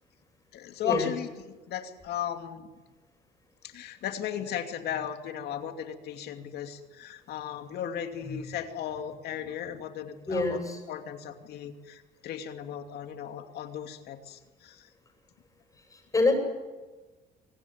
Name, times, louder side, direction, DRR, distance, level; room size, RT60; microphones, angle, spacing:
voice 1, 0.5-2.7 3.6-10.6 10.9-14.9, left 9 dB, 70° left, 6 dB, 2.6 m, -36 dB
voice 2, 10.3-10.8 15.9-16.4, left 3 dB, 20° left, 4 dB, 7.8 m, -26 dB
25.0 x 18.5 x 9.4 m, 1.2 s
cardioid pair, 110°, 17 cm